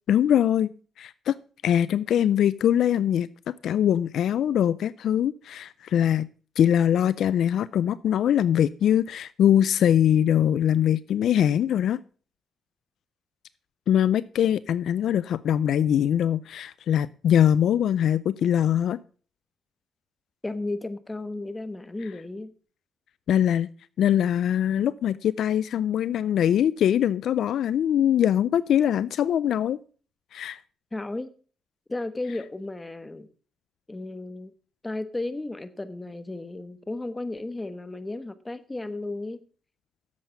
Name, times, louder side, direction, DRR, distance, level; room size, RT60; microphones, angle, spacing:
voice 1, 0.1-0.7 1.0-1.4 1.6-6.3 6.6-12.0 13.9-19.0 23.3-23.7 24.0-29.8 30.3-30.6, left 10 dB, 70° left, 18 dB, 0.4 m, -22 dB
voice 2, 20.4-22.5 30.9-31.3 31.9-33.3 33.9-34.5 34.8-39.4, left 2 dB, 15° left, 13 dB, 1.1 m, -34 dB
10.5 x 7.6 x 5.5 m, 0.40 s
cardioid pair, 90°, 0 cm